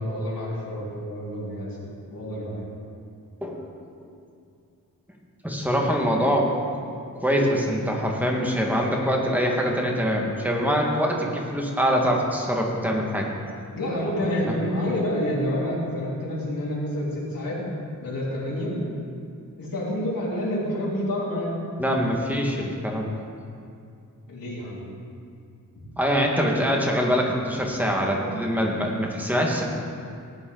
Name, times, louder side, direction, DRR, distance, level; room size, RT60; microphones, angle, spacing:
voice 1, 0.0-1.8 2.1-2.7 13.8-17.6 18.0-18.8 19.6-21.6 24.3-24.9 25.7-25.8, left 1 dB, 90° left, -6 dB, 3.6 m, -28 dB
voice 2, 5.4-6.8 7.2-13.3 14.5-14.6 21.8-23.1 26.0-29.6, equal, 5° right, -1 dB, 1.7 m, -24 dB
18.0 x 9.6 x 3.9 m, 2.4 s
wide cardioid pair, 130°, 33 cm